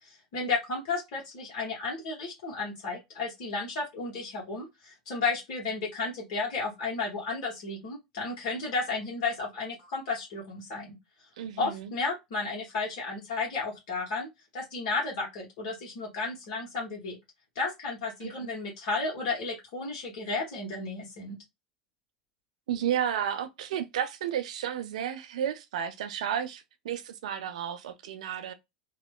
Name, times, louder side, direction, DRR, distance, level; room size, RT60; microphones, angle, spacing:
voice 1, 0.0-11.0 11.6-14.3 14.5-17.2 17.5-21.4, left 3 dB, 60° left, 1.0 m, -33 dB
voice 2, 11.4-11.9 18.2-18.5 22.7-28.5, right 9 dB, 70° right, 0.4 m, -32 dB
2.9 x 2.0 x 2.3 m
hypercardioid pair, 80°, 4 cm